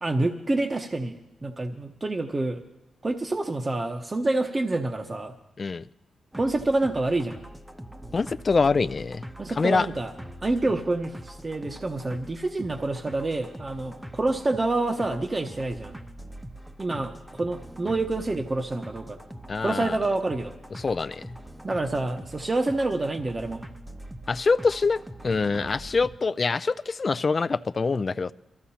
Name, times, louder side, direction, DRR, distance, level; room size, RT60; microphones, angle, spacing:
voice 1, 0.0-2.6 3.0-5.3 6.4-7.4 9.4-10.1 10.4-16.0 16.8-19.2 19.6-20.5 21.6-23.6, right 2 dB, 30° right, 5 dB, 0.9 m, -27 dB
sound 1, 6.3-26.2, equal, 10° right, 0.8 m, -43 dB
voice 2, 8.1-9.2 9.6-9.9 19.5-20.0 20.8-21.2 24.3-28.3, left 4 dB, 45° left, 13 dB, 0.4 m, -25 dB
23.0 x 14.0 x 2.9 m, 0.98 s
cardioid pair, 65°, 0 cm